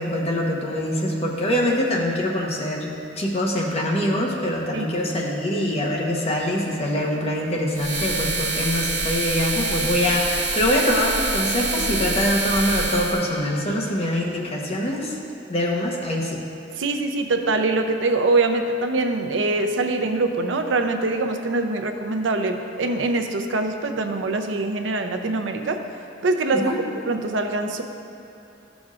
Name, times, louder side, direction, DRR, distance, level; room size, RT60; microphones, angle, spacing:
voice 1, 0.0-15.2 15.5-16.4 26.5-26.8, left 1 dB, 35° left, -2 dB, 1.1 m, -24 dB
sound 1, 7.7-13.3, right 3 dB, 40° right, 1.3 m, -26 dB
voice 2, 16.8-25.8 26.2-26.7 27.1-27.8, right 2 dB, 85° right, 6 dB, 0.5 m, -23 dB
13.5 x 6.1 x 2.4 m, 2.6 s
head